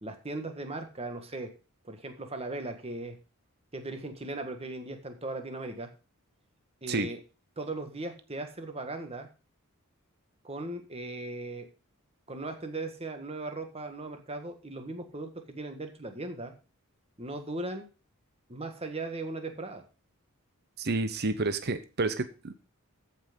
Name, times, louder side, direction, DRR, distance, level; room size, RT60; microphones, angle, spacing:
voice 1, 0.0-1.5 1.8-3.2 3.7-5.9 6.8-7.2 7.6-9.3 10.4-11.7 12.3-16.5 17.2-17.9 18.5-19.8, right 2 dB, 25° right, 6 dB, 1.6 m, -38 dB
voice 2, 20.8-22.5, right 3 dB, 45° right, 11 dB, 0.8 m, -30 dB
14.0 x 6.0 x 5.2 m, 0.33 s
head